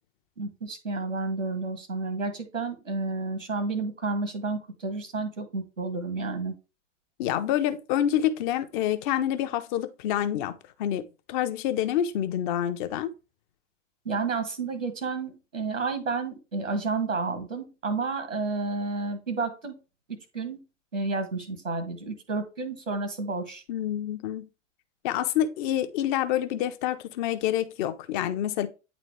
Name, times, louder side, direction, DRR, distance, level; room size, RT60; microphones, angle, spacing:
voice 1, 0.4-6.6 14.0-19.7 20.3-20.6 20.9-23.6, right 3 dB, 90° right, 1.5 m, -31 dB
voice 2, 7.2-10.5 10.8-13.1 23.7-24.5 25.0-28.7, left 11 dB, 40° left, 0.8 m, -27 dB
9.0 x 4.1 x 3.3 m
figure-of-eight pair, 90°, 37 cm